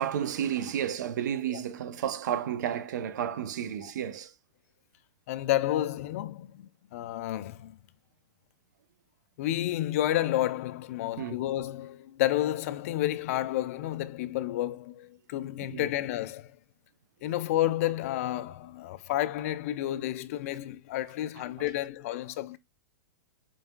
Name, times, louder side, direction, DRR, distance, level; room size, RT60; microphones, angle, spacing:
voice 1, 0.0-4.3 11.2-11.4 15.7-15.9 21.6-21.7, right 9 dB, 65° right, 0.6 m, -32 dB
voice 2, 5.3-7.8 9.4-16.5 17.2-22.6, left 14 dB, 45° left, 0.4 m, -30 dB
5.3 x 3.3 x 2.2 m
hypercardioid pair, 155°, 10 cm